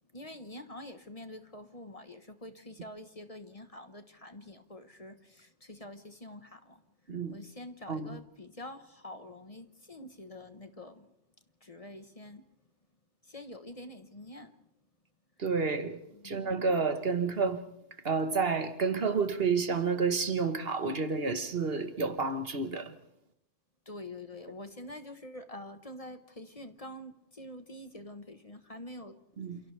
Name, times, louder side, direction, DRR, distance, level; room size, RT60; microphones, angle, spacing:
voice 1, 0.1-6.8 7.3-11.1 11.6-12.4 13.2-14.6 16.1-16.6 23.9-29.2, left 1 dB, 30° left, 1.2 m, -46 dB
voice 2, 7.9-8.2 15.4-17.6 18.0-22.9 29.4-29.6, right 4 dB, 60° right, 1.5 m, -30 dB
28.5 x 28.0 x 3.4 m
omnidirectional pair, 1.2 m